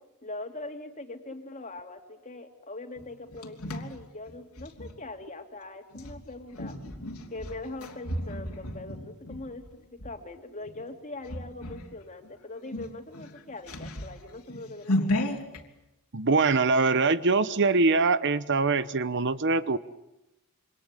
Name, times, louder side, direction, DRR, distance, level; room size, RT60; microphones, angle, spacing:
voice 1, 0.2-6.8 7.3-9.7 9.9-15.4, left 2 dB, 35° left, 5 dB, 2.9 m, -42 dB
sound 1, 3.0-4.9 5.9-10.1 10.6-10.9 11.2-11.9 12.2-12.3 12.6-15.6, left 1 dB, 75° left, 3.5 m, -34 dB
voice 2, 16.1-19.8, right 4 dB, 55° right, 14 dB, 1.0 m, -23 dB
28.0 x 25.0 x 8.4 m, 0.91 s
head